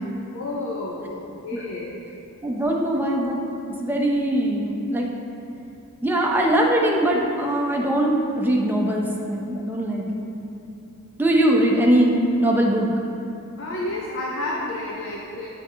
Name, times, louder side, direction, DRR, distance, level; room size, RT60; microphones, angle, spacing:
voice 1, 0.3-1.9 13.6-15.5, left 2 dB, 55° left, -2 dB, 0.6 m, -30 dB
voice 2, 2.4-3.4 3.8-5.1 6.0-10.3 11.2-12.9, right 1 dB, 10° right, -2 dB, 0.6 m, -21 dB
9.2 x 4.7 x 3.3 m, 2.8 s
head